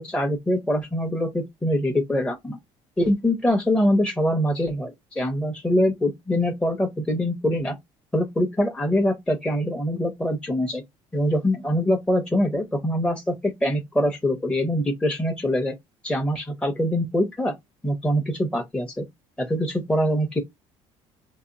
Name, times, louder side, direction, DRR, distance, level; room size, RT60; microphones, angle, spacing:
voice 1, 0.0-2.6 3.0-7.8 8.1-10.8 11.1-15.8 16.0-17.5 17.8-19.0 19.4-20.4, left 1 dB, 10° left, 0.6 m, -24 dB
2.7 x 2.2 x 2.5 m
cardioid pair, 110°, 12 cm